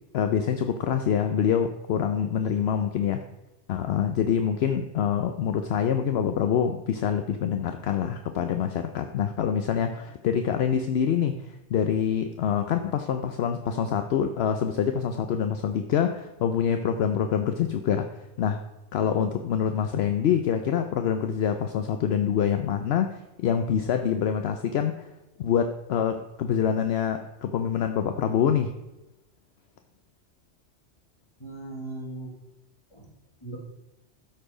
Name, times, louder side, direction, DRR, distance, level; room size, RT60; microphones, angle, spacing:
voice 1, 0.1-3.2 3.7-18.1 18.4-18.6 18.9-25.1 25.4-28.7, left 8 dB, 70° left, 7 dB, 0.8 m, -26 dB
voice 2, 2.4-2.9 31.4-32.3 32.9-33.1 33.4-33.6, right 2 dB, 25° left, -1 dB, 2.0 m, -39 dB
12.5 x 4.6 x 4.9 m, 0.99 s
omnidirectional pair, 1.2 m